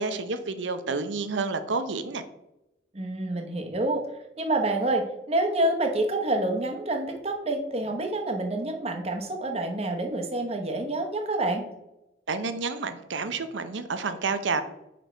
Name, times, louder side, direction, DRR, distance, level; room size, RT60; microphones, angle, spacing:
voice 1, 0.0-2.2 12.3-14.6, right 4 dB, 85° right, 10 dB, 0.7 m, -29 dB
voice 2, 2.9-4.0 4.4-11.7, right 2 dB, 35° right, 3 dB, 0.9 m, -27 dB
5.2 x 5.1 x 4.4 m, 0.91 s
head